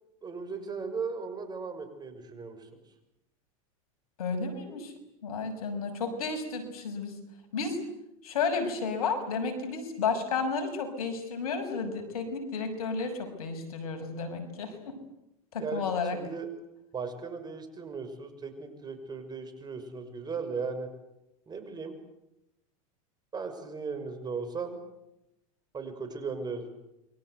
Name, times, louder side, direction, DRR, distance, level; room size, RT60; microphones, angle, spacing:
voice 1, 0.2-2.6 15.6-15.9 16.1-16.5 16.9-20.9 21.5-21.9 23.3-24.8 25.7-26.7, right 5 dB, 20° right, 8 dB, 6.3 m, -37 dB
voice 2, 4.2-4.9 5.2-7.2 7.5-7.8 8.2-14.9 15.5-16.2, left 4 dB, 85° left, 7 dB, 6.5 m, -32 dB
28.5 x 23.5 x 8.1 m, 0.88 s
hypercardioid pair, 110°, 18 cm